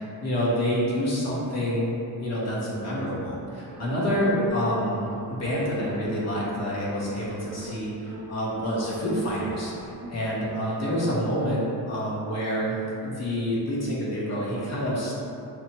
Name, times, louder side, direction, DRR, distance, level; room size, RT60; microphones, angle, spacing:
voice 1, 0.0-1.9 2.2-15.2, equal, 45° left, -6 dB, 1.0 m, -28 dB
sound 1, 3.7-10.2, equal, 30° right, 0.6 m, -40 dB
5.9 x 2.1 x 2.9 m, 2.7 s
wide cardioid pair, 155°, 36 cm